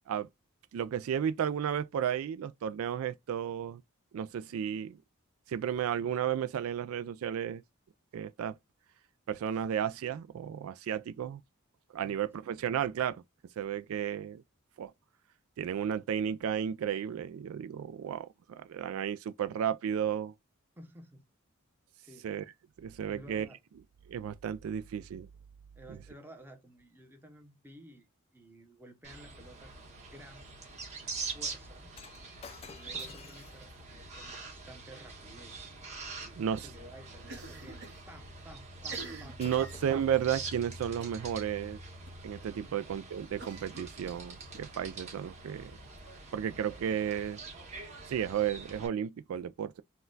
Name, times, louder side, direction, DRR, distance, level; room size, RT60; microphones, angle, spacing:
voice 1, 0.7-3.8 4.1-5.0 5.5-7.6 8.1-8.6 9.3-11.4 11.9-13.2 13.6-14.4 14.8-14.9 15.6-20.3 22.2-22.4 22.8-23.5 24.1-25.3 36.4-36.7 39.4-41.8 42.2-45.8 46.3-47.4 48.1-49.8, right 9 dB, 70° right, 0.3 m, -33 dB
voice 2, 12.0-12.4 20.8-21.3 22.0-22.3 23.1-23.6 25.7-28.1 28.3-30.5 31.3-31.9 32.7-35.7 36.1-39.7 42.7-42.8, right 1 dB, 10° right, 0.8 m, -53 dB
sound 1, 29.0-48.9, right 3 dB, 30° right, 1.2 m, -45 dB
Shatter, 31.9-36.3 39.0-39.1 39.4-40.9 41.6-41.8, left 5 dB, 30° left, 0.4 m, -54 dB
Cough, 37.2-38.0 38.3-38.4 38.8-40.3 41.0-41.3 41.6-41.7 42.1-42.2 43.4-44.6, right 3 dB, 55° right, 1.1 m, -47 dB
4.2 x 2.3 x 3.8 m
head